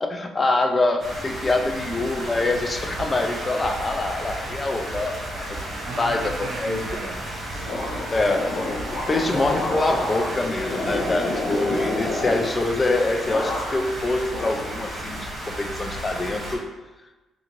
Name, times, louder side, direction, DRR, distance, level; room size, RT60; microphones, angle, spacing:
voice 1, 0.0-5.6 6.0-6.8 8.1-8.5 8.8-15.3 15.6-16.6, left 2 dB, 30° left, 5 dB, 0.4 m, -25 dB
sound 1, 1.0-16.6, right 1 dB, 25° right, 1.2 m, -33 dB
sound 2, 3.0-4.0 4.3-5.3 5.6-5.9 6.2-6.6 6.8-7.2 7.5-7.9 8.1-9.7, right 4 dB, 40° right, 0.9 m, -41 dB
voice 2, 5.8-7.2 7.5-8.1 8.9-9.1, right 4 dB, 80° right, 0 dB, 0.5 m, -37 dB
sound 3, 7.7-12.9 13.2-14.0 14.3-15.2, left 2 dB, 75° left, 0.6 m, -29 dB
3.6 x 2.5 x 3.0 m, 1.1 s
cardioid pair, 90°, 0 cm